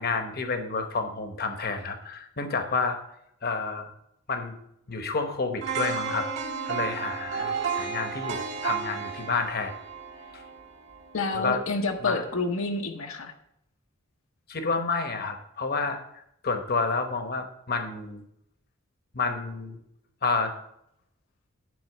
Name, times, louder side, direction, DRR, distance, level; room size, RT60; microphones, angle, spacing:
voice 1, 0.0-3.0 3.4-3.9 4.3-4.5 4.9-6.3 6.6-9.7 10.3-10.4 11.3-11.6 12.0-12.2 14.5-16.0 16.4-18.2 19.1-19.8 20.2-20.5, left 4 dB, 50° left, 7 dB, 1.0 m, -29 dB
sound 1, 5.6-11.6 12.0-12.1, right 6 dB, 60° right, 2.3 m, -33 dB
voice 2, 11.1-13.3, left 3 dB, 75° left, 3 dB, 0.9 m, -29 dB
9.6 x 4.2 x 7.3 m, 0.76 s
head